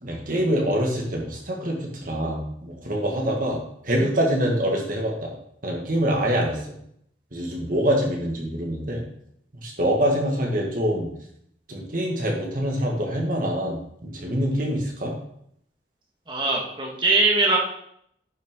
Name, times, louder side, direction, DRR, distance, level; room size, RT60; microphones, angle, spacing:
voice 1, 0.0-3.6 3.8-5.3 5.6-6.7 7.3-9.0 9.6-11.1 11.7-15.1, equal, 50° right, 0 dB, 1.8 m, -25 dB
voice 2, 16.3-17.6, right 3 dB, 25° right, -1 dB, 1.6 m, -21 dB
10.0 x 5.7 x 3.8 m, 0.71 s
head